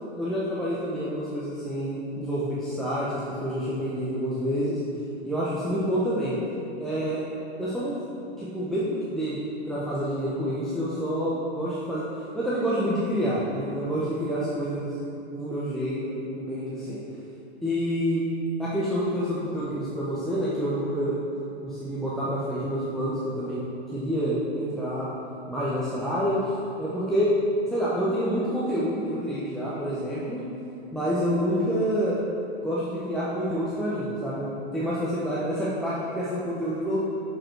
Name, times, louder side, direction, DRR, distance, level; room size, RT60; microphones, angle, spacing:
voice 1, 0.1-4.8 5.2-6.4 6.8-7.2 7.6-8.0 8.4-12.0 12.3-15.0 15.3-17.0 17.6-18.2 18.6-21.2 21.6-23.6 23.9-25.1 25.5-27.3 27.7-30.4 30.9-32.2 32.6-37.0, equal, ahead, -9 dB, 1.0 m, -28 dB
7.1 x 5.4 x 4.6 m, 2.8 s
hypercardioid pair, 110°, 32 cm